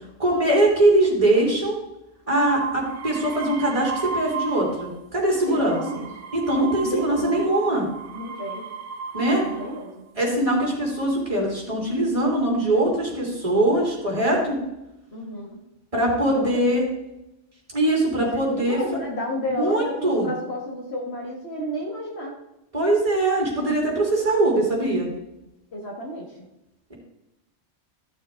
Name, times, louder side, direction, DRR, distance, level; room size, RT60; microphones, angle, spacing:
voice 1, 0.2-1.8 2.3-5.8 6.3-7.8 9.1-9.4 10.1-14.6 15.9-16.8 17.7-18.8 19.6-20.3 22.7-25.1, right 1 dB, 25° right, -2 dB, 2.9 m, -22 dB
sound 1, 2.5-5.0 5.4-9.9 10.7-11.2, right 5 dB, 90° right, 1.1 m, -35 dB
voice 2, 5.4-6.1 6.5-7.5 8.1-8.7 9.4-10.1 15.1-15.5 16.3-16.7 18.2-22.4 25.7-26.3, left 1 dB, 60° left, -2 dB, 2.1 m, -32 dB
13.5 x 7.0 x 3.9 m, 0.91 s
omnidirectional pair, 1.2 m